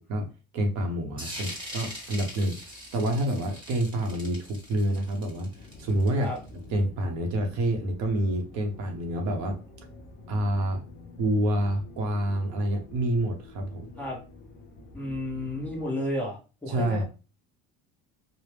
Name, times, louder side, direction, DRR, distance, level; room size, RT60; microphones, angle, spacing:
voice 1, 0.5-2.6 2.9-6.3 6.7-9.6 10.3-10.8 11.2-13.9 16.7-17.0, right 1 dB, 55° right, 3 dB, 0.8 m, -27 dB
sound 1, 1.2-6.5, equal, 15° right, 1.2 m, -41 dB
sound 2, 5.5-15.8, left 2 dB, 30° left, 0.7 m, -47 dB
voice 2, 14.9-17.0, left 1 dB, 5° left, -4 dB, 0.9 m, -32 dB
4.9 x 2.0 x 3.2 m, 0.32 s
cardioid pair, 175°, 34 cm